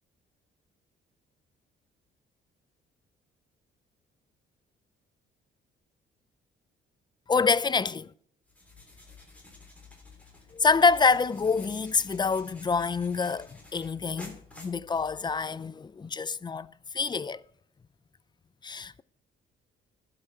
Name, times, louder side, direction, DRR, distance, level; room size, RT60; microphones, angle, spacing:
voice 1, 7.3-8.1 10.5-16.7 16.9-17.4 18.6-19.0, left 4 dB, 20° left, 0.4 m, -26 dB
sound 1, 8.4-15.5, left 3 dB, 5° left, 3.5 m, -51 dB
12.0 x 5.9 x 6.1 m
cardioid pair, 90°, 20 cm